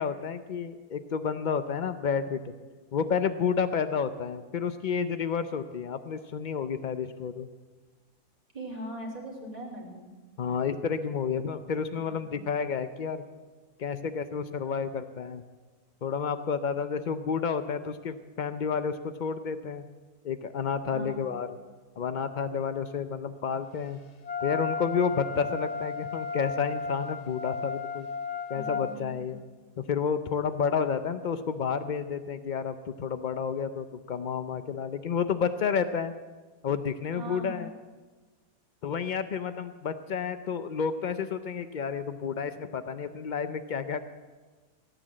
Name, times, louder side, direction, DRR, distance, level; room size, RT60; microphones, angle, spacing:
voice 1, 0.0-2.5 2.9-7.5 10.4-13.2 13.8-15.4 16.0-19.8 20.2-21.5 22.0-24.0 24.4-28.1 28.5-29.4 29.8-36.1 36.6-37.7 38.8-44.0, left 6 dB, 85° left, 11 dB, 0.4 m, -30 dB
voice 2, 8.5-10.0 11.9-12.4 20.9-21.4 28.5-29.4 37.1-37.7, right 1 dB, 25° right, -2 dB, 3.4 m, -41 dB
Wind instrument woodwind instrument, 24.2-28.9, left 5 dB, 35° left, 0.7 m, -34 dB
17.5 x 9.5 x 7.5 m, 1.3 s
omnidirectional pair, 1.7 m